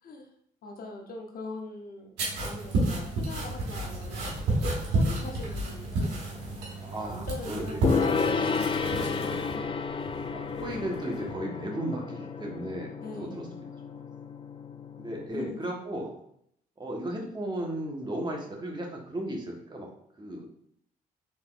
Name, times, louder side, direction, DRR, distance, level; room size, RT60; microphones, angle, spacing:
voice 1, 0.6-6.7 7.0-7.9 8.2-9.6 13.0-13.6 15.3-15.6, left 2 dB, 60° left, 2 dB, 0.9 m, -42 dB
sound 1, 2.2-9.5, right 2 dB, 80° right, 1.3 m, -31 dB
sound 2, 3.3-11.3, right 1 dB, 80° left, 1.4 m, -47 dB
voice 2, 6.8-7.8 10.3-13.4 13.9-14.0 15.0-16.1 16.8-19.9 20.2-20.5, right 1 dB, 25° right, -1 dB, 1.4 m, -35 dB
Gong, 7.8-15.3, left 5 dB, 30° left, 0.4 m, -31 dB
3.9 x 3.9 x 2.5 m, 0.69 s
supercardioid pair, 55°, 17 cm